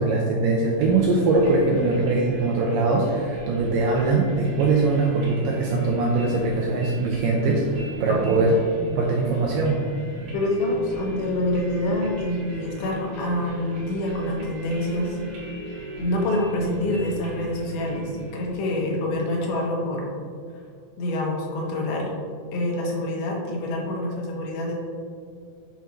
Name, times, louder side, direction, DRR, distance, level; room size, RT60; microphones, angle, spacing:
voice 1, 0.0-8.6 9.0-9.8, right 3 dB, 85° right, -1 dB, 1.9 m, -22 dB
sound 1, 0.8-19.5, equal, 45° right, 2.0 m, -37 dB
voice 2, 8.1-8.5 10.3-15.2 16.0-20.1 21.0-22.1 22.5-24.7, left 1 dB, 80° left, -1 dB, 2.8 m, -26 dB
7.4 x 5.6 x 2.9 m, 2.2 s
omnidirectional pair, 4.5 m